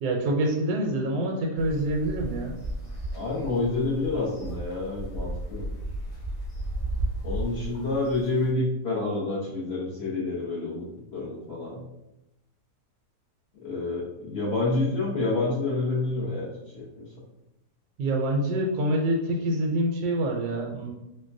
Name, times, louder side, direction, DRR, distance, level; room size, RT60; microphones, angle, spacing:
voice 1, 0.0-2.5 18.0-20.9, right 1 dB, 75° right, 0 dB, 1.1 m, -26 dB
sound 1, 1.6-8.5, right 1 dB, 85° left, 2.1 m, -34 dB
voice 2, 3.1-5.6 7.2-10.8 11.1-11.8 13.6-16.5 16.7-17.1, left 2 dB, 50° left, -7 dB, 0.9 m, -28 dB
4.4 x 2.2 x 2.5 m, 0.92 s
omnidirectional pair, 1.7 m